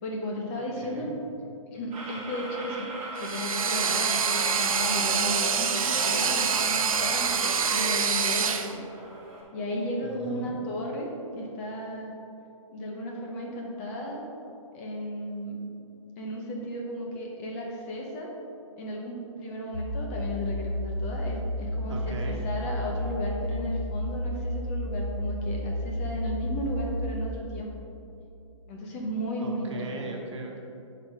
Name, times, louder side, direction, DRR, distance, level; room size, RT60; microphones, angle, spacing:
voice 1, 0.0-1.1 1.7-8.8 9.5-11.1 11.4-12.1 12.7-14.2 14.7-15.6 16.2-18.3 18.8-27.7 28.7-30.0, equal, 25° left, -1 dB, 1.0 m, -34 dB
voice 2, 0.8-1.1 10.0-10.5 21.9-22.4 29.4-30.6, right 3 dB, 55° right, 0 dB, 1.6 m, -38 dB
sound 1, 1.9-9.4, right 2 dB, 25° right, 2.0 m, -41 dB
sound 2, 3.2-8.7, right 6 dB, 90° right, 0.8 m, -26 dB
sound 3, 19.7-27.3, left 1 dB, 60° left, 1.0 m, -32 dB
10.0 x 4.9 x 4.8 m, 2.7 s
hypercardioid pair, 165°, 17 cm